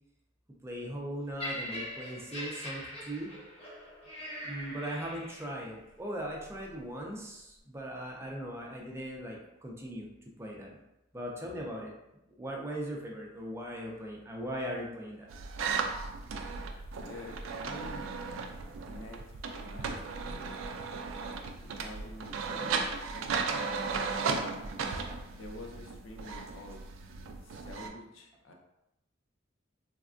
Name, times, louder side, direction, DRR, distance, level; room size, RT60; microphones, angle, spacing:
voice 1, 0.6-3.3 4.4-10.1 10.4-10.8 11.1-11.9 12.4-15.3, equal, 15° right, -1 dB, 0.4 m, -39 dB
Laughter, 1.4-5.6 6.4-6.6, left 1 dB, 30° left, 0.8 m, -42 dB
sound 1, 15.3-27.9, right 4 dB, 80° right, 0.3 m, -36 dB
voice 2, 17.0-18.1 18.9-19.9 20.2-20.6 21.8-22.7 24.2-24.7 25.3-26.9 27.4-28.5, left 1 dB, 90° left, 0 dB, 0.6 m, -47 dB
3.4 x 2.1 x 2.5 m, 0.88 s
head